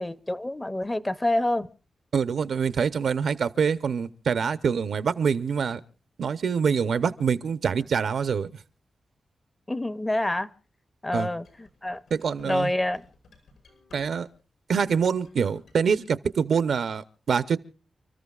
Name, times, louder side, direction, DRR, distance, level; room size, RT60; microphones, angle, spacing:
voice 1, 0.0-1.7 9.7-10.5 11.0-12.0 12.4-13.0, left 1 dB, 15° left, 0.6 m, -27 dB
voice 2, 2.1-5.8 6.2-8.5 11.1-11.3 12.1-12.7 13.9-14.3 14.7-17.6, right 6 dB, 75° right, 0.7 m, -25 dB
sound 1, 11.1-14.4 14.8-15.8, left 3 dB, 90° left, 6.1 m, -57 dB
30.0 x 14.0 x 2.4 m
wide cardioid pair, 150°, 0 cm